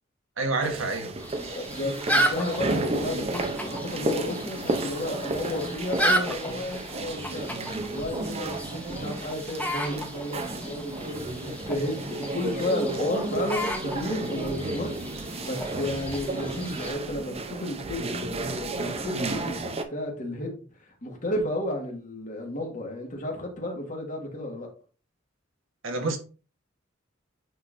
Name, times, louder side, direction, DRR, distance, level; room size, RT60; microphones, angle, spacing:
voice 1, 0.4-1.1 25.8-26.2, right 3 dB, 90° right, 1.3 m, -28 dB
sound 1, 0.6-19.8, right 2 dB, 30° right, 0.7 m, -33 dB
sound 2, 1.2-16.9, equal, 10° left, 0.8 m, -33 dB
voice 2, 1.3-24.7, left 1 dB, 40° left, 1.7 m, -33 dB
9.3 x 3.9 x 2.6 m
head